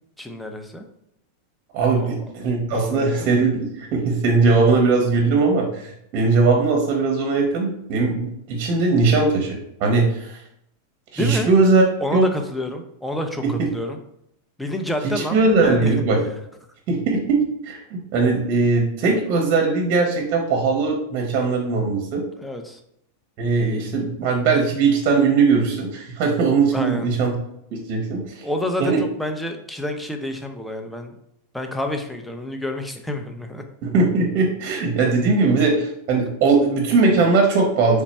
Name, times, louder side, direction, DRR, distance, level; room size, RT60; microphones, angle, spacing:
voice 1, 0.2-0.8 2.0-2.2 2.7-3.3 11.2-11.5 12.0-14.0 14.6-15.9 22.4-22.8 26.7-27.1 28.4-31.1 31.5-33.6, left 1 dB, 5° left, 4 dB, 0.5 m, -28 dB
voice 2, 1.7-10.4 11.1-11.8 12.1-12.2 13.4-13.5 15.0-16.2 16.9-22.2 23.4-27.3 27.7-28.5 28.8-29.0 33.8-38.0, right 4 dB, 50° right, 1 dB, 0.8 m, -20 dB
3.4 x 2.1 x 4.1 m, 0.76 s
hypercardioid pair, 115°, 0 cm